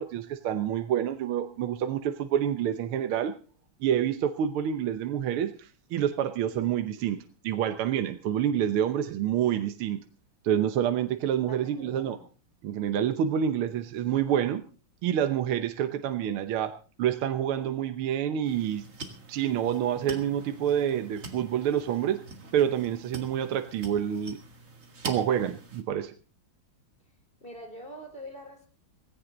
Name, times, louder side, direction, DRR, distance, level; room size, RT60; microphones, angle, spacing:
voice 1, 0.0-3.3 3.8-7.2 7.4-10.0 10.4-12.2 12.6-14.6 15.0-18.9 19.3-22.2 22.5-24.4 25.1-26.1, right 9 dB, 75° right, 9 dB, 1.8 m, -28 dB
voice 2, 11.5-12.3 27.4-28.7, equal, 25° left, 4 dB, 4.0 m, -44 dB
sound 1, 18.4-25.8, right 3 dB, 35° right, 2.3 m, -44 dB
17.5 x 16.5 x 3.9 m, 0.36 s
omnidirectional pair, 2.4 m